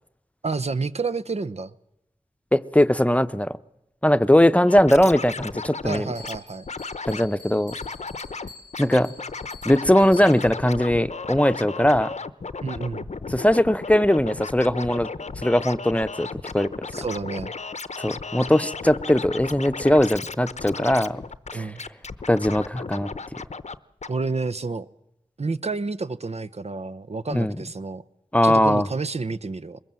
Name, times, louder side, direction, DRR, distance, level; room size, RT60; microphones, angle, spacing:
voice 1, 0.4-1.7 5.8-6.7 12.6-13.1 16.9-17.5 21.5-21.8 24.1-24.9 25.4-28.0 28.4-29.8, right 4 dB, 60° right, 0.8 m, -29 dB
voice 2, 2.5-3.5 4.0-6.1 7.1-7.7 8.8-9.1 9.6-12.1 13.3-15.1 15.4-16.3 16.5-16.9 18.0-21.2 21.5-21.7 22.3-23.1 27.3-27.5 28.3-28.9, left 1 dB, 10° left, 0.8 m, -20 dB
Scratching (performance technique), 4.7-6.4 6.7-7.3 7.7-8.5 8.7-23.8 24.0-24.1, left 4 dB, 65° left, 0.8 m, -35 dB
Bell, 6.1-10.7, left 4 dB, 85° right, 3.8 m, -47 dB
23.0 x 21.0 x 7.7 m
wide cardioid pair, 45°, 12 cm